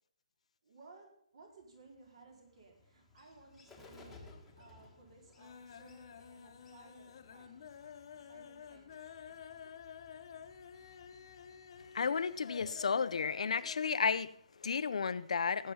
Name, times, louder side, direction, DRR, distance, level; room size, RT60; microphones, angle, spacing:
voice 1, 0.6-7.7 8.2-9.4, right 3 dB, 50° right, 4.7 m, -60 dB
Bird, 1.6-13.1, left 3 dB, ahead, 1.7 m, -61 dB
sound 1, 3.3-4.0 4.2-4.8 5.1-14.1 14.4-14.5 14.8-14.9, left 7 dB, 45° left, 1.1 m, -51 dB
voice 2, 11.9-15.7, left 5 dB, 65° left, 0.6 m, -33 dB
18.0 x 8.4 x 5.7 m
hypercardioid pair, 165°, 4 cm